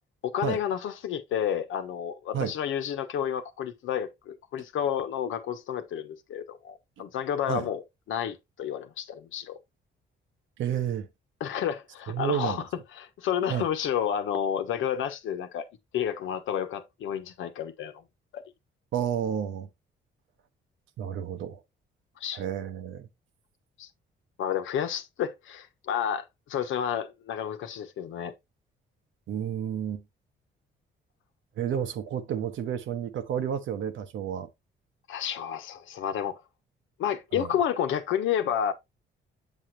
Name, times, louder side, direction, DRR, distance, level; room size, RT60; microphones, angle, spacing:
voice 1, 0.2-7.8 8.1-9.6 11.4-12.6 12.9-15.7 15.9-18.0 18.3-18.5 22.2-22.4 23.8-23.9 24.4-28.3 35.1-36.4 37.0-38.7, left 9 dB, 80° left, 1.1 m, -30 dB
voice 2, 10.6-11.1 12.1-12.6 13.5-13.6 18.9-19.7 21.0-21.6 22.3-23.1 29.3-30.0 31.6-34.5 37.3-37.5, right 9 dB, 75° right, 1.1 m, -31 dB
7.2 x 6.3 x 2.7 m
cardioid pair, 90°, 20 cm